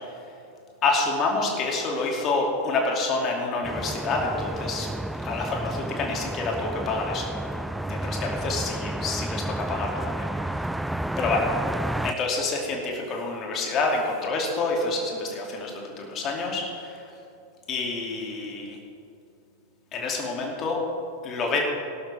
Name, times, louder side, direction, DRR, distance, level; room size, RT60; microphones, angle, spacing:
voice 1, 0.8-4.9 5.2-7.3 7.9-10.7 11.2-11.5 12.0-17.0 17.7-18.8 19.9-20.8 21.2-21.6, left 3 dB, 30° left, 0 dB, 2.5 m, -28 dB
sound 1, 3.6-12.1, right 1 dB, 5° right, 0.3 m, -31 dB
18.5 x 12.0 x 3.5 m, 2.6 s
figure-of-eight pair, 90°, 0 cm